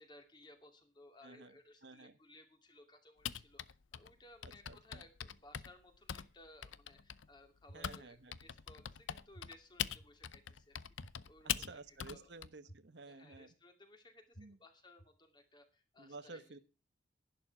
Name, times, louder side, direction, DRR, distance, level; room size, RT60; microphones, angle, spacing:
voice 1, 0.0-12.3 13.0-16.4, left 1 dB, 25° left, 5 dB, 2.5 m, -61 dB
voice 2, 1.2-2.2 4.4-5.0 7.7-8.4 11.4-13.5 14.4-14.6 16.0-16.6, right 3 dB, 65° right, 14 dB, 1.1 m, -53 dB
Typing, 3.2-8.0 8.3-12.5, left 9 dB, 85° left, 0.6 m, -42 dB
sound 1, 7.7-7.8 8.3-8.4 9.3-9.4 10.0-10.1 11.0-11.1 11.7-11.8 12.7-12.8 13.3-13.4 14.3-14.4 15.0-15.1, right 1 dB, 50° left, 1.4 m, -54 dB
11.0 x 11.0 x 5.9 m, 0.32 s
head